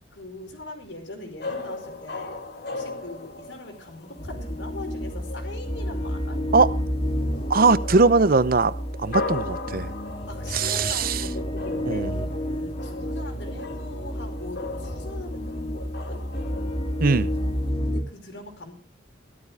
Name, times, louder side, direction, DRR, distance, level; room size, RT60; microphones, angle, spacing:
voice 1, 0.1-2.4 2.7-6.4 10.3-12.1 12.5-16.2 17.9-18.7, left 2 dB, 90° left, 4.9 m, -41 dB
sound 1, 1.4-17.7, left 3 dB, 60° left, 2.1 m, -38 dB
sound 2, 4.2-18.0, equal, 30° left, 2.0 m, -30 dB
voice 2, 7.5-8.7 9.0-9.9 10.5-11.2 11.9-12.1 17.0-17.3, right 4 dB, 55° right, 0.8 m, -20 dB
17.5 x 13.5 x 3.5 m
head